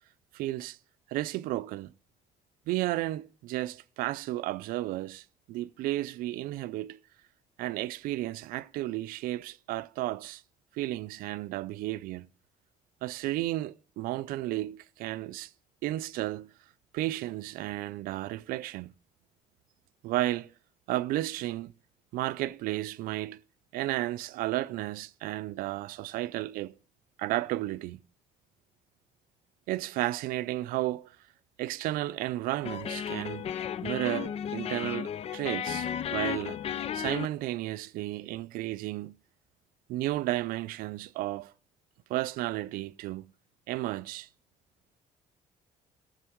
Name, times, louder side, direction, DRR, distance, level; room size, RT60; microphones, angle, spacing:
voice 1, 0.3-0.8 1.1-1.9 2.7-7.0 7.6-10.4 10.7-12.3 13.0-15.5 15.8-16.5 16.9-18.9 20.0-20.5 20.9-21.7 22.1-23.4 23.7-26.7 27.2-28.0 29.7-31.2 31.6-33.5 33.8-39.2 39.9-41.5 42.1-43.3 43.7-44.3, right 16 dB, 90° right, 0.5 m, -33 dB
sound 1, 32.6-37.3, left 9 dB, 45° left, 0.4 m, -34 dB
17.5 x 7.2 x 4.5 m
cardioid pair, 105°, 14 cm